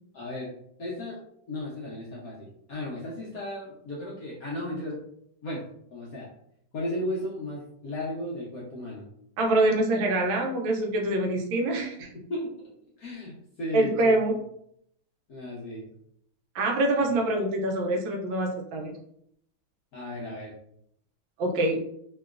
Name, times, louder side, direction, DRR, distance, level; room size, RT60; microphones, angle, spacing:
voice 1, 0.1-0.5 0.8-1.2 1.5-5.0 5.4-5.6 5.9-6.3 6.7-9.0 12.0-12.7 13.0-14.3 15.3-15.9 19.9-20.5, left 1 dB, 65° left, -5 dB, 0.9 m, -35 dB
voice 2, 9.4-12.1 13.7-14.4 16.5-18.9 21.4-21.8, right 2 dB, 75° right, 1 dB, 1.3 m, -25 dB
3.1 x 2.9 x 2.4 m, 0.71 s
omnidirectional pair, 2.2 m